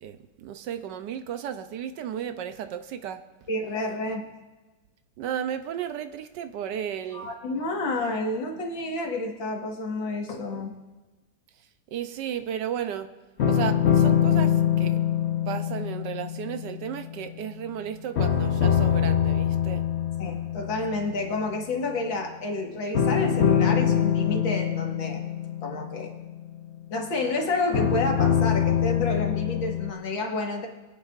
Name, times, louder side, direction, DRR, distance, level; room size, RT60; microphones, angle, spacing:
voice 1, 0.0-3.2 5.2-7.3 11.9-13.1 13.5-15.0 15.5-19.8, right 9 dB, 75° right, 9 dB, 1.2 m, -34 dB
voice 2, 3.5-4.3 7.1-10.7 20.2-25.2 25.6-26.1 26.9-30.7, left 2 dB, 85° left, 1 dB, 2.3 m, -29 dB
sound 1, 13.4-17.8 18.2-21.4 22.9-26.9 27.7-29.9, left 9 dB, 55° left, 0.7 m, -24 dB
24.0 x 9.3 x 2.5 m, 1.2 s
omnidirectional pair, 2.0 m